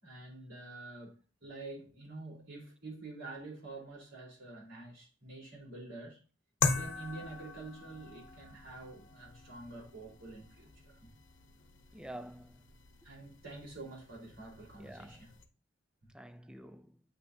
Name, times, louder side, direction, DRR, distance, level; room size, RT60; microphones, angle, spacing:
voice 1, 0.0-6.2 6.7-11.1 13.0-15.3, right 2 dB, 75° right, 3.8 m, -47 dB
sound 1, 6.6-15.4, left 4 dB, 70° left, 0.9 m, -41 dB
voice 2, 11.9-12.7 14.8-15.3 16.1-17.0, right 1 dB, 5° right, 0.4 m, -48 dB
8.2 x 5.8 x 2.7 m
head